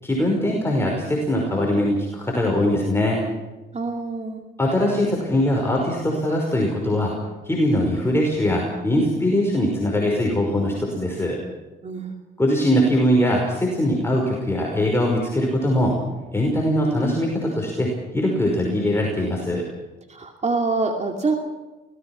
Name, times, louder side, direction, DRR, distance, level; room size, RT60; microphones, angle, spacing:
voice 1, 0.0-3.2 4.6-7.1 7.5-11.4 12.4-15.9 16.3-17.9 18.1-19.6, left 1 dB, 10° left, -1 dB, 5.3 m, -21 dB
voice 2, 3.7-4.5 11.8-12.1 20.1-21.3, right 3 dB, 35° right, 3 dB, 2.5 m, -25 dB
25.0 x 18.5 x 6.1 m, 1.2 s
cardioid pair, 90°, 20 cm